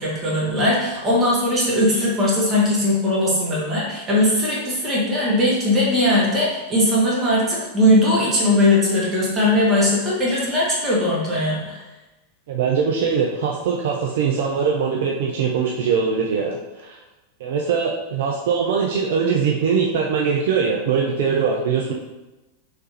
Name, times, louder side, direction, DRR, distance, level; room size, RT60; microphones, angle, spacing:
voice 1, 0.0-11.8, left 1 dB, 25° right, -5 dB, 1.3 m, -19 dB
voice 2, 12.5-17.0 17.4-21.9, right 6 dB, 55° right, -1 dB, 0.4 m, -22 dB
3.2 x 3.1 x 2.9 m, 1.1 s
figure-of-eight pair, 90°, 0 cm